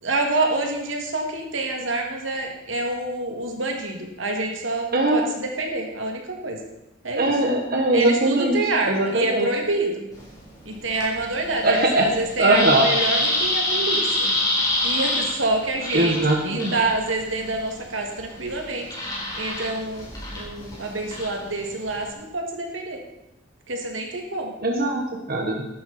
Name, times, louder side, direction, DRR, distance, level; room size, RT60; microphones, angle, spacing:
voice 1, 0.0-6.6 7.0-7.4 7.9-10.1 10.6-14.3 14.8-16.2 16.4-18.9 19.4-23.0 23.7-24.5, right 2 dB, 85° right, 2 dB, 2.5 m, -27 dB
voice 2, 7.2-8.6 8.9-9.5 11.6-12.1 12.4-12.9 15.9-16.7 24.6-25.7, right 2 dB, 50° right, 1 dB, 1.4 m, -21 dB
sound 1, 10.1-22.1, left 1 dB, 20° left, 4.3 m, -28 dB
14.5 x 11.5 x 4.4 m, 0.89 s
head